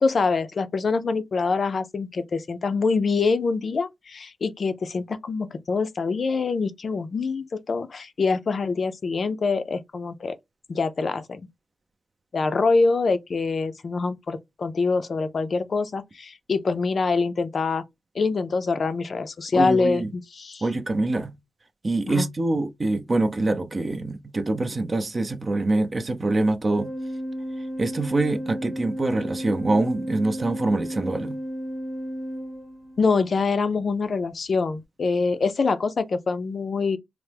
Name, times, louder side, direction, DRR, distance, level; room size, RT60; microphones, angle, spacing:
voice 1, 0.0-10.3 10.7-11.4 12.3-17.8 18.2-20.6 22.1-22.3 33.0-37.0, left 4 dB, 55° left, 0.4 m, -25 dB
voice 2, 19.5-20.1 20.6-21.3 21.8-26.9 27.8-31.4, right 2 dB, 35° right, 0.5 m, -25 dB
Organ, 26.7-33.2, equal, 10° right, 0.9 m, -33 dB
3.2 x 2.0 x 3.2 m
wide cardioid pair, 100°, 0 cm